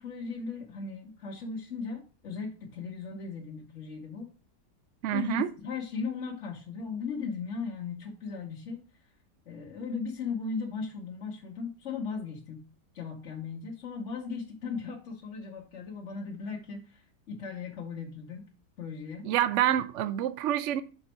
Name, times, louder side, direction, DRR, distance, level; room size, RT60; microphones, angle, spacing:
voice 1, 0.0-4.3 5.1-8.8 9.5-12.6 12.9-18.5 18.8-19.3, left 5 dB, 50° left, 1.3 m, -37 dB
voice 2, 5.0-5.5 19.2-20.8, right 11 dB, 70° right, 0.7 m, -27 dB
6.1 x 4.0 x 4.4 m
omnidirectional pair, 1.8 m